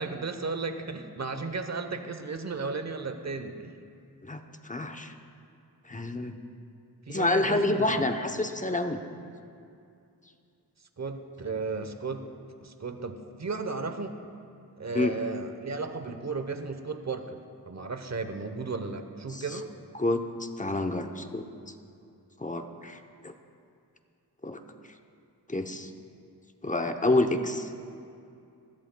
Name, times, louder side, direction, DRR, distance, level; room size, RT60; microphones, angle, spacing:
voice 1, 0.0-3.7 7.1-8.1 11.0-12.3 12.6-14.2 14.8-17.4 17.7-19.7, right 4 dB, 40° right, 8 dB, 0.9 m, -34 dB
voice 2, 4.2-5.1 5.9-6.4 7.1-9.0 14.9-15.1 19.3-19.4 19.9-21.4 22.4-23.3 24.4-24.6 25.5-25.9 26.6-27.7, left 2 dB, 20° left, 6 dB, 0.7 m, -28 dB
20.5 x 14.0 x 2.3 m, 2.5 s
wide cardioid pair, 65°, 40 cm